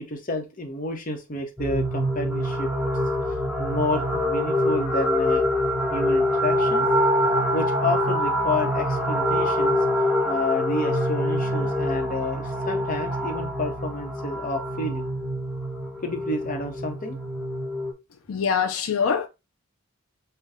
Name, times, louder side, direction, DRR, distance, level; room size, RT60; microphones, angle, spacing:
voice 1, 0.0-2.7 3.6-5.4 5.9-6.9 7.5-9.8 10.2-15.1 16.0-17.2, left 2 dB, 40° left, 1.0 m, -30 dB
sound 1, 1.6-17.9, equal, 5° right, 1.0 m, -25 dB
voice 2, 18.3-19.3, left 6 dB, 80° left, 0.5 m, -23 dB
5.7 x 2.3 x 3.6 m
head